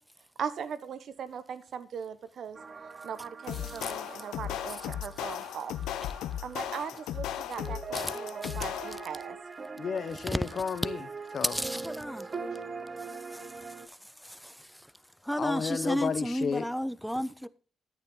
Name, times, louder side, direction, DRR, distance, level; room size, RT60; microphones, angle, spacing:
voice 1, 0.4-2.6 3.0-5.7 6.4-9.4, right 7 dB, 60° right, 1.0 m, -39 dB
sound 1, 2.5-13.9, right 4 dB, 35° right, 0.9 m, -42 dB
sound 2, 3.5-9.2, left 11 dB, 90° left, 0.7 m, -36 dB
voice 2, 3.5-4.0 7.9-8.2 8.4-9.0 10.2-10.4 11.4-12.4 13.0-14.9 15.2-17.5, equal, ahead, 0.5 m, -34 dB
voice 3, 9.8-11.0 11.3-11.6 15.4-16.7, left 6 dB, 50° left, 1.0 m, -32 dB
10.5 x 8.9 x 3.8 m
cardioid pair, 90°, 0 cm